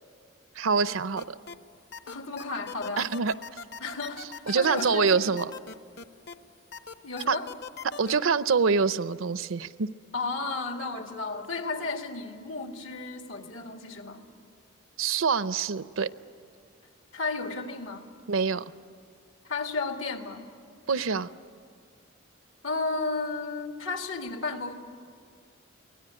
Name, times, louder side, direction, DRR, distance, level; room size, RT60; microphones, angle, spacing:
voice 1, 0.6-1.4 3.0-3.3 4.5-5.5 7.3-7.4 7.8-9.9 15.0-16.1 18.3-18.6 20.9-21.3, right 5 dB, 80° right, 15 dB, 0.6 m, -25 dB
sound 1, 0.9-1.6 1.9-6.3 6.7-8.1, left 5 dB, 55° left, 0.9 m, -40 dB
voice 2, 2.1-3.1 3.8-5.3 7.0-7.5 10.1-14.2 17.1-18.1 19.4-20.5 22.6-24.7, left 3 dB, 80° left, 4 dB, 2.0 m, -33 dB
24.0 x 17.5 x 9.6 m, 2.1 s
head